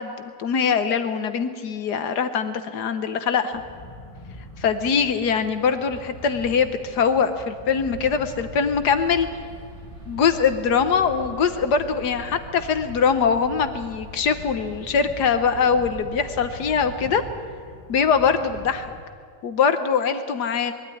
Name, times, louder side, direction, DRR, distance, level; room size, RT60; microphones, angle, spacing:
voice 1, 0.0-3.6 4.6-9.3 10.1-17.2 17.9-18.9 19.4-20.7, left 6 dB, 65° left, 10 dB, 1.5 m, -22 dB
sound 1, 3.5-19.0, equal, 20° left, 1.5 m, -43 dB
sound 2, 7.8-17.1, right 1 dB, 40° right, 1.9 m, -42 dB
21.0 x 13.0 x 9.9 m, 2.1 s
omnidirectional pair, 1.9 m